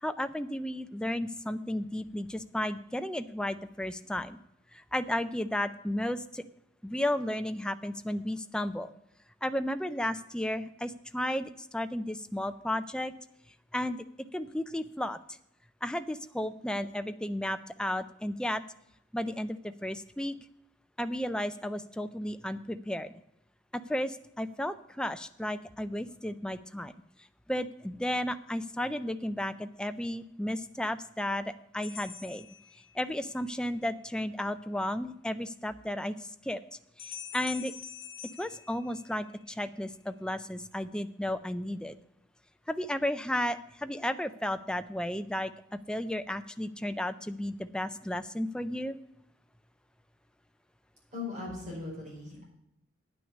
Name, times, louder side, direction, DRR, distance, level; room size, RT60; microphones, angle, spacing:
voice 1, 0.0-4.4 4.7-6.4 6.8-8.9 9.4-13.1 13.7-14.0 14.3-15.2 15.8-18.6 19.1-20.4 21.0-23.1 23.7-26.9 27.5-32.5 32.9-36.6 37.0-37.7 38.4-42.0 42.7-45.5 45.9-49.0, left 1 dB, 5° left, 10 dB, 0.4 m, -33 dB
sound 1, 31.8-33.4 37.0-39.5, left 8 dB, 50° left, 1.6 m, -45 dB
voice 2, 51.1-52.4, left 3 dB, 35° right, -4 dB, 5.1 m, -39 dB
9.4 x 6.2 x 8.2 m, 0.81 s
head